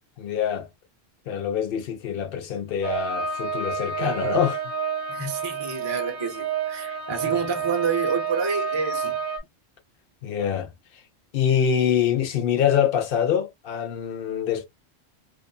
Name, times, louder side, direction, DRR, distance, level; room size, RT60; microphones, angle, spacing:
voice 1, 0.2-0.7 1.3-4.6 10.2-10.7 11.3-14.7, left 8 dB, 60° left, 0.8 m, -24 dB
sound 1, 2.8-9.4, right 6 dB, 55° right, 0.9 m, -29 dB
voice 2, 5.1-9.2, right 5 dB, 30° right, 0.6 m, -28 dB
2.6 x 2.4 x 2.3 m
omnidirectional pair, 1.2 m